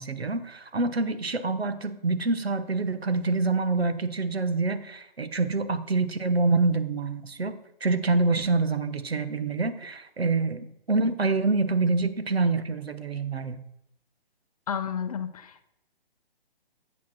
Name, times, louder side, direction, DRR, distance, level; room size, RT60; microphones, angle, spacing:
voice 1, 0.0-13.6, right 3 dB, 85° right, 10 dB, 1.1 m, -26 dB
voice 2, 14.7-15.7, left 7 dB, 40° left, 12 dB, 0.7 m, -32 dB
8.2 x 4.6 x 6.1 m, 0.78 s
figure-of-eight pair, 140°, 30 cm